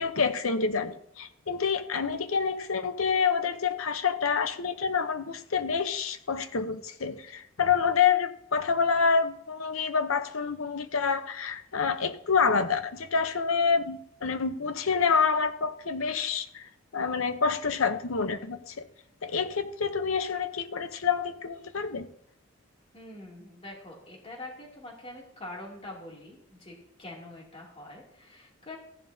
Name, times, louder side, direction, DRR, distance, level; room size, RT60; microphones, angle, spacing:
voice 1, 0.0-18.9 19.2-22.1, left 5 dB, 80° left, 11 dB, 0.8 m, -27 dB
voice 2, 22.9-28.8, left 1 dB, 30° left, -3 dB, 2.6 m, -44 dB
14.5 x 10.5 x 2.7 m, 0.73 s
head